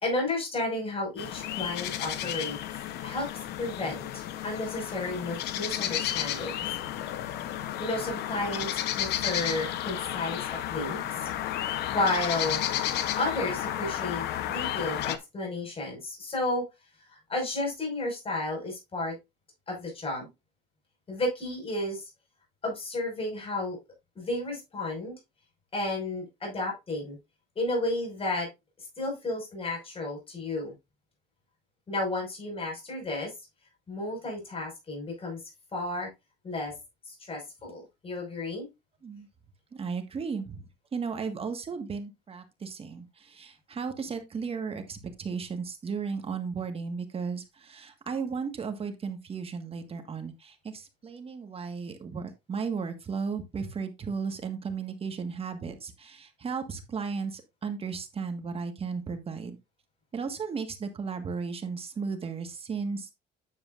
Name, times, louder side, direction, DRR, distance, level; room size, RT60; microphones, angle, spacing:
voice 1, 0.0-2.6 3.0-3.3 3.6-6.5 7.8-11.0 11.9-12.6 13.1-16.6 17.1-19.2 19.7-20.3 21.1-22.1 22.6-23.8 24.2-25.1 25.7-27.2 27.6-28.5 29.0-30.7 31.9-33.3 33.9-35.4 35.7-36.1 36.4-36.7 37.0-38.7, left 2 dB, 35° left, 0 dB, 5.4 m, -32 dB
sound 1, 1.2-15.2, left 12 dB, 80° left, 1.0 m, -32 dB
voice 2, 39.7-40.6 40.9-59.6 60.1-63.1, right 5 dB, 35° right, 6 dB, 1.6 m, -35 dB
9.8 x 7.6 x 2.5 m, 0.23 s
cardioid pair, 110°, 17 cm